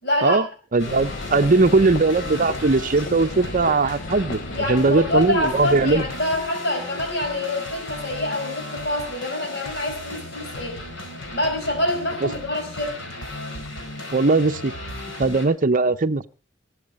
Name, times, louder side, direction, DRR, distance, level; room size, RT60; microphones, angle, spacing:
voice 1, 0.0-0.4 4.5-10.8 11.3-13.1, left 1 dB, 60° left, 4.8 m, -26 dB
voice 2, 0.7-4.4 4.7-6.0 12.2-12.3 14.1-14.7 15.2-16.3, right 3 dB, 45° right, 0.7 m, -19 dB
sound 1, 0.8-15.5, left 1 dB, 75° left, 4.6 m, -35 dB
sound 2, 0.9-6.1, left 3 dB, 45° left, 0.7 m, -34 dB
20.5 x 7.8 x 5.3 m
head